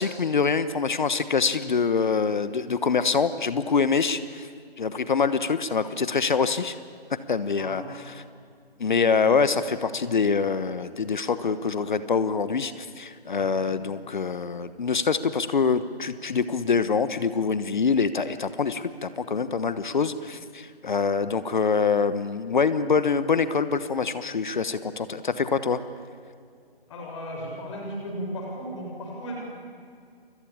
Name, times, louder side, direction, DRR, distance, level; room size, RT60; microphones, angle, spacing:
voice 1, 0.0-4.5 4.8-6.8 7.3-7.8 8.8-25.8, left 5 dB, 50° left, 13 dB, 1.2 m, -25 dB
voice 2, 26.9-29.3, equal, 30° left, 0 dB, 7.0 m, -35 dB
29.0 x 22.5 x 8.6 m, 2.2 s
figure-of-eight pair, 150°, 31 cm